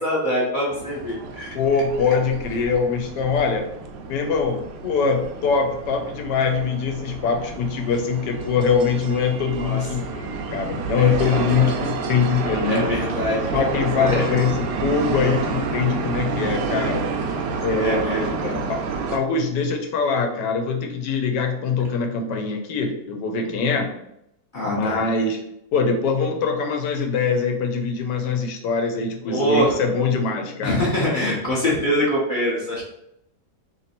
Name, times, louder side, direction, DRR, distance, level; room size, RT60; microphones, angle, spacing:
voice 1, 0.0-1.5 9.6-9.8 10.9-11.9 12.6-14.3 17.8-18.6 24.5-25.0 29.3-29.8 30.6-32.8, left 1 dB, 40° left, -4 dB, 0.8 m, -24 dB
sound 1, 0.7-19.2, right 4 dB, 75° right, 1.1 m, -29 dB
voice 2, 1.5-3.7 4.1-12.9 13.5-17.1 17.6-18.0 18.7-18.8 19.1-23.9 24.6-30.8, left 5 dB, 75° left, 4 dB, 1.3 m, -23 dB
3.2 x 3.0 x 4.2 m, 0.79 s
omnidirectional pair, 1.9 m